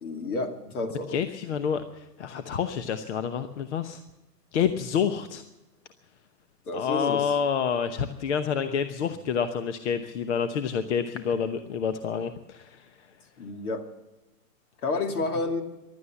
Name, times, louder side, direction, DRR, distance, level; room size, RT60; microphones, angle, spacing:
voice 1, 0.0-1.2 6.7-7.3 13.4-13.9 14.8-15.6, left 3 dB, 60° left, 6 dB, 2.5 m, -30 dB
voice 2, 1.1-4.0 4.5-5.4 6.7-13.1, left 7 dB, 45° left, 10 dB, 0.9 m, -28 dB
15.5 x 11.5 x 7.1 m, 1.0 s
hypercardioid pair, 130°, 49 cm